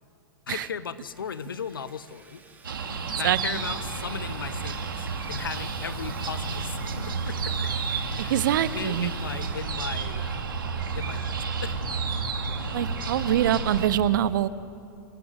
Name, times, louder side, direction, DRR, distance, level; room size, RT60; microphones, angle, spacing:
voice 1, 0.5-2.4 3.2-7.7 8.2-8.4 8.7-10.5 10.9-11.8, left 7 dB, 90° left, 15 dB, 1.1 m, -37 dB
Sawing, 1.1-10.5, right 4 dB, 15° right, 4.4 m, -52 dB
sound 1, 2.6-13.9, right 4 dB, 90° right, 2.8 m, -31 dB
voice 2, 8.2-9.1 12.7-14.5, right 11 dB, 70° right, 16 dB, 1.1 m, -24 dB
29.5 x 15.0 x 8.3 m, 2.5 s
hypercardioid pair, 110°, 11 cm